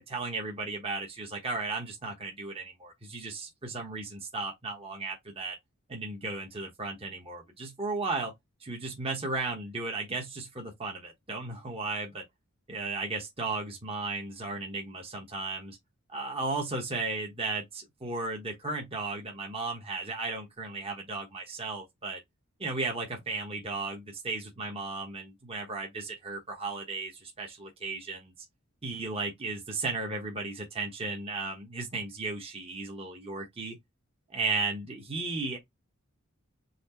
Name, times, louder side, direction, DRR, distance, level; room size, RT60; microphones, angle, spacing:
voice 1, 0.0-5.6 5.9-8.3 8.6-12.2 12.7-15.8 16.1-22.2 22.6-28.3 28.8-33.8 34.3-35.6, right 3 dB, 30° right, 1.1 m, -35 dB
4.3 x 3.0 x 4.2 m
head